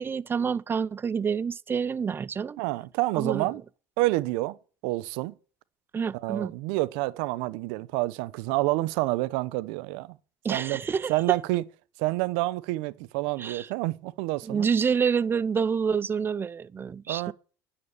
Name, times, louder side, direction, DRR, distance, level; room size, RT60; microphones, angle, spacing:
voice 1, 0.0-2.6 3.1-3.5 5.9-6.5 10.4-11.4 13.4-13.7 14.4-17.3, right 6 dB, 25° right, 0.6 m, -28 dB
voice 2, 2.6-3.6 4.0-4.6 4.8-5.3 6.1-10.2 10.5-10.8 11.1-11.6 12.0-14.7 17.1-17.3, right 19 dB, 75° right, 1.0 m, -28 dB
10.0 x 10.0 x 8.9 m
supercardioid pair, 100°, 9 cm